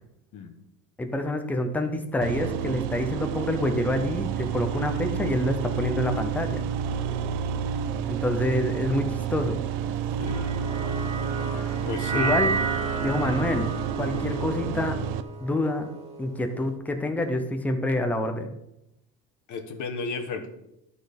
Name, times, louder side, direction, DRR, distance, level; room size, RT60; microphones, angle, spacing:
voice 1, 1.0-6.6 8.1-9.6 12.1-12.5 13.0-13.7 14.0-15.0 15.4-15.9 16.2-18.5, left 1 dB, 5° left, 6 dB, 0.4 m, -27 dB
sound 1, 2.2-15.2, right 8 dB, 55° right, 0.6 m, -30 dB
sound 2, 10.3-16.6, right 4 dB, 15° right, 1.5 m, -32 dB
voice 2, 11.8-12.4 19.5-20.5, left 5 dB, 35° left, 5 dB, 1.1 m, -33 dB
12.0 x 4.1 x 5.0 m, 0.84 s
cardioid pair, 155°, 49 cm